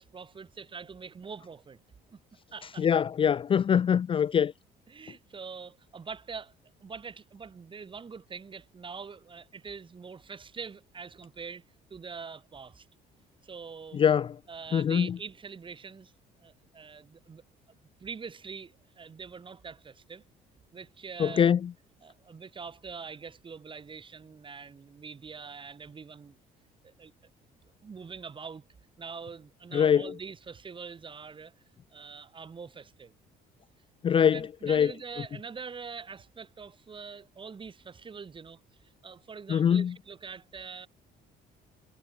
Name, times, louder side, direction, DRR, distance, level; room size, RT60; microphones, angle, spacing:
voice 1, 0.0-1.8 2.1-2.2 2.5-2.9 4.9-6.5 6.8-11.6 11.9-12.9 13.4-14.0 14.5-16.1 16.4-17.4 18.0-20.2 20.7-21.5 22.0-26.4 26.8-27.1 27.8-28.6 29.0-31.5 31.9-33.1 34.1-40.9, right 5 dB, 30° right, 3.1 m, -44 dB
voice 2, 2.8-4.5 13.9-14.4 14.7-15.1 21.2-21.7 29.7-30.1 34.0-34.9 39.5-39.9, left 8 dB, 30° left, 0.4 m, -23 dB
cardioid pair, 110°, 17 cm